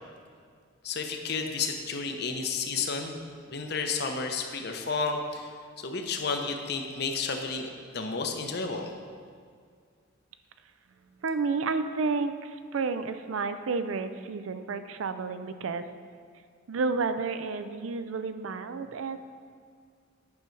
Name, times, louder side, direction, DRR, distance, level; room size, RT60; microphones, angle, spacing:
voice 1, 0.8-3.2 3.5-8.9, left 4 dB, 55° left, 4 dB, 0.7 m, -32 dB
voice 2, 11.2-15.9 16.7-19.2, right 4 dB, 90° right, 10 dB, 0.5 m, -31 dB
9.5 x 6.2 x 4.6 m, 2.1 s
head